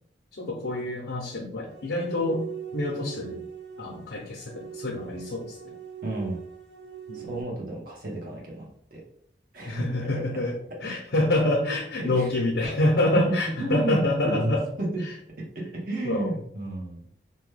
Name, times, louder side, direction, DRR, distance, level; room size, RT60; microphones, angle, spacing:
voice 1, 0.3-2.5 2.7-3.4 3.8-5.7 7.1-7.4 9.7-10.5 10.8-14.6 15.0-15.1 16.0-16.3, left 1 dB, 85° left, -2 dB, 0.6 m, -27 dB
sound 1, 1.7-7.4, right 9 dB, 75° right, 0.7 m, -41 dB
voice 2, 6.0-6.4 7.1-9.0 9.5-10.1 12.0-12.3 13.1-13.2 13.6-14.5 14.8-15.0 15.5-17.1, right 2 dB, 50° right, -2 dB, 0.9 m, -32 dB
2.9 x 2.2 x 3.2 m, 0.64 s
head